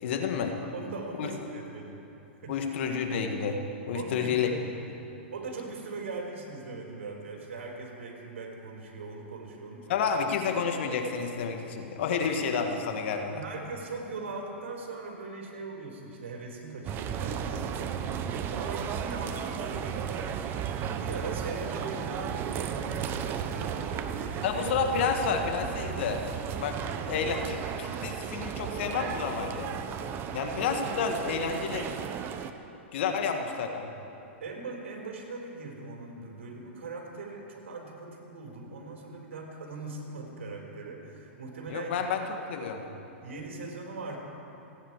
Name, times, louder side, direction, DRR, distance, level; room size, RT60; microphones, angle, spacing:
voice 1, 0.0-0.6 1.2-1.4 2.5-3.6 3.9-4.5 9.9-13.4 24.4-26.2 26.6-26.8 27.1-29.7 30.3-31.9 32.9-33.9 41.7-42.8, left 6 dB, 65° left, 4 dB, 1.7 m, -30 dB
voice 2, 0.6-2.6 3.9-4.3 4.8-10.0 13.3-20.3 21.0-24.6 30.2-30.6 33.0-33.1 34.4-42.0 43.2-44.2, right 3 dB, 75° right, 0 dB, 4.4 m, -40 dB
sound 1, 16.9-32.5, right 8 dB, 35° right, 0.9 m, -34 dB
30.0 x 10.0 x 4.8 m, 3.0 s
hypercardioid pair, 120°, 7 cm